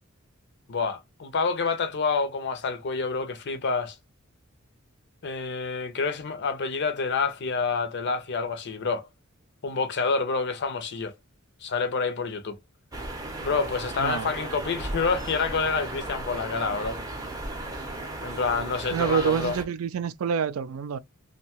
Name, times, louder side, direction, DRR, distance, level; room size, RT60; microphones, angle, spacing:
voice 1, 0.7-4.0 5.2-9.1 9.6-11.1 11.6-12.6 13.4-17.0 18.2-19.6, left 4 dB, 55° left, 0.5 m, -28 dB
sound 1, 12.9-19.7, right 2 dB, 15° right, 0.6 m, -35 dB
voice 2, 18.9-21.0, right 7 dB, 70° right, 0.3 m, -27 dB
2.6 x 2.2 x 2.9 m
head